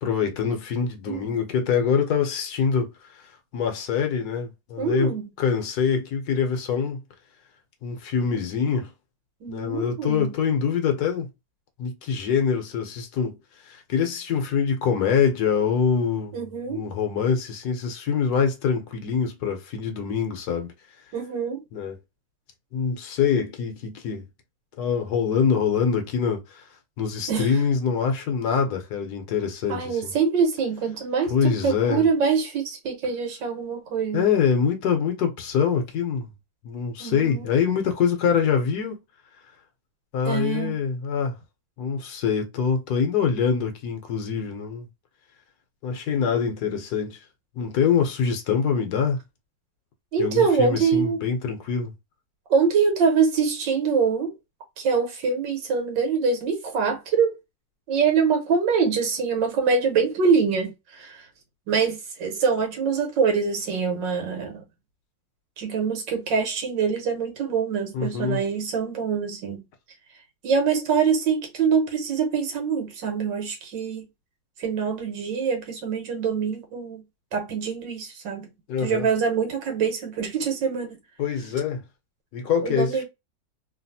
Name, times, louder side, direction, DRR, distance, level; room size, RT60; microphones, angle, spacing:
voice 1, 0.0-3.2 3.5-7.0 7.8-8.9 9.5-11.3 11.8-13.4 13.6-16.4 16.7-20.7 21.7-22.0 22.7-24.3 24.8-26.6 27.0-30.1 31.3-32.0 34.1-36.3 36.6-39.0 40.1-41.3 41.8-44.9 45.8-47.2 47.5-49.2 50.2-51.9 67.9-68.4 78.7-79.1 81.2-81.8 82.3-83.0, left 6 dB, 65° left, 1.2 m, -24 dB
voice 2, 1.1-1.4 4.8-5.2 9.4-10.3 16.3-16.8 21.1-21.6 27.3-27.5 29.7-34.3 37.0-37.5 40.3-40.8 50.1-51.2 52.5-54.3 54.8-57.3 57.9-61.3 61.7-64.6 65.6-69.6 70.4-74.0 74.6-77.0 77.3-78.5 78.8-81.0 82.6-83.0, right 5 dB, 85° right, 1.7 m, -24 dB
3.3 x 2.5 x 2.7 m
omnidirectional pair, 1.9 m